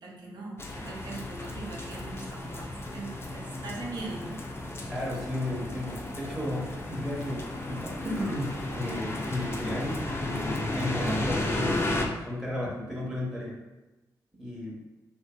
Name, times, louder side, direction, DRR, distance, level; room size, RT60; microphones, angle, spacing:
voice 1, 0.0-4.4, right 3 dB, 65° right, -3 dB, 0.7 m, -40 dB
sound 1, 0.6-12.1, left 1 dB, 30° left, 0.5 m, -34 dB
voice 2, 4.9-11.8 12.2-13.5 14.4-14.8, left 1 dB, 5° right, -6 dB, 0.8 m, -34 dB
2.6 x 2.5 x 2.2 m, 1.0 s
supercardioid pair, 45°, 8 cm